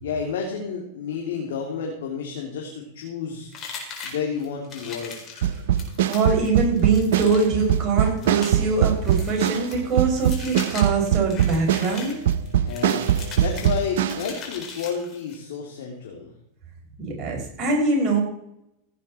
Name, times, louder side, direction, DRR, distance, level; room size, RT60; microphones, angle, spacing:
voice 1, 0.0-3.5 4.0-5.5 12.6-13.1 13.4-16.3, left 6 dB, 80° left, 0 dB, 2.8 m, -31 dB
sound 1, 3.5-15.4, left 5 dB, 35° left, 4.5 m, -40 dB
sound 2, 5.4-14.3, right 10 dB, 75° right, 0.7 m, -22 dB
voice 2, 6.1-12.1 17.0-18.2, right 4 dB, 35° right, -2 dB, 5.4 m, -23 dB
16.0 x 8.8 x 4.3 m, 0.77 s
hypercardioid pair, 115°, 0 cm